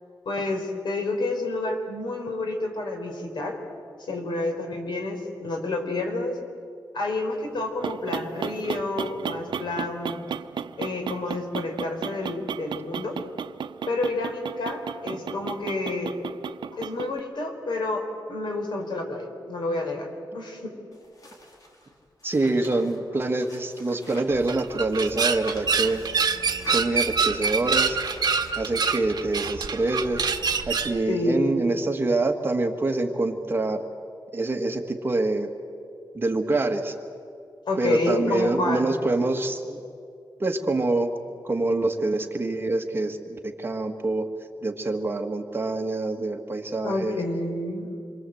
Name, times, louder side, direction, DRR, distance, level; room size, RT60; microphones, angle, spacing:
voice 1, 0.2-3.6 4.0-6.4 6.9-10.3 10.8-13.2 13.9-16.1 16.7-20.1 20.3-20.8 31.1-31.6 37.7-39.1 46.8-47.9, left 2 dB, 75° left, 3 dB, 4.6 m, -29 dB
sound 1, 7.5-17.2, right 7 dB, 85° right, 0.7 m, -34 dB
sound 2, 20.9-24.5 24.8-29.5 30.2-30.3, left 1 dB, 50° left, 4.1 m, -47 dB
voice 2, 22.2-26.0 26.7-28.0 28.6-30.3 30.7-33.8 34.3-35.5 36.1-36.9 37.8-39.8 40.4-41.1 41.4-44.3 44.6-47.2, right 2 dB, 30° right, 4 dB, 1.8 m, -26 dB
sound 3, 24.3-31.0, right 5 dB, 55° right, 1.4 m, -26 dB
27.5 x 24.0 x 7.9 m, 2.3 s
wide cardioid pair, 150°, 8 cm